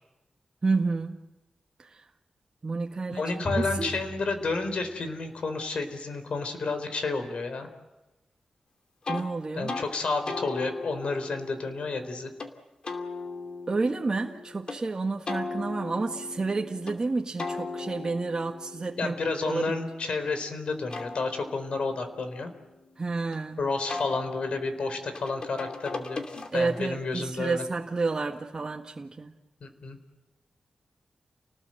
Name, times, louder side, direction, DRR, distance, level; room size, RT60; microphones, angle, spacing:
voice 1, 0.6-1.2 1.9-2.0 2.6-3.9 9.1-9.8 13.7-19.1 19.4-19.8 23.0-23.6 26.5-29.3, right 3 dB, 35° right, 1 dB, 1.6 m, -30 dB
voice 2, 3.1-7.7 9.5-12.3 19.0-22.5 23.6-26.2 26.5-27.6 29.6-30.0, left 3 dB, 70° left, 8 dB, 4.1 m, -31 dB
Drum, 3.4-5.8, equal, 25° left, 3.2 m, -38 dB
sound 1, 9.0-9.3 9.7-9.9 10.3-12.5 12.8-14.8 15.3-17.0 17.4-20.3 20.7-23.4 23.9-26.9, left 3 dB, 50° left, 2.7 m, -38 dB
30.0 x 19.5 x 7.8 m, 1.0 s
wide cardioid pair, 100°, 2 cm